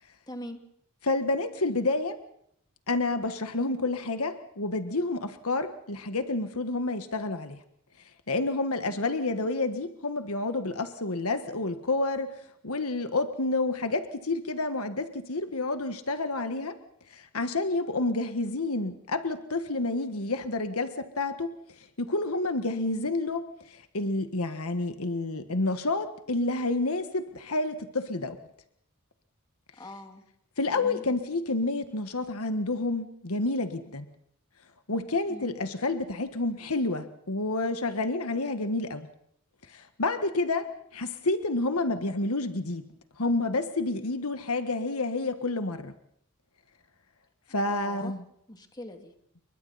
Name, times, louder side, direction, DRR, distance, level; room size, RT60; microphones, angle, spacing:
voice 1, 0.3-0.6 22.8-23.1 29.8-30.2 30.7-31.0 35.3-35.5 47.7-48.1 48.5-49.1, left 1 dB, 20° left, 4 dB, 2.5 m, -42 dB
voice 2, 1.0-2.2 2.9-7.6 8.3-12.3 12.6-16.7 17.1-21.5 22.0-23.4 23.7-28.4 30.6-34.1 34.9-39.1 39.7-42.9 43.2-45.9 47.5-48.2, left 2 dB, 75° left, 8 dB, 1.6 m, -29 dB
29.0 x 23.5 x 4.2 m, 0.72 s
head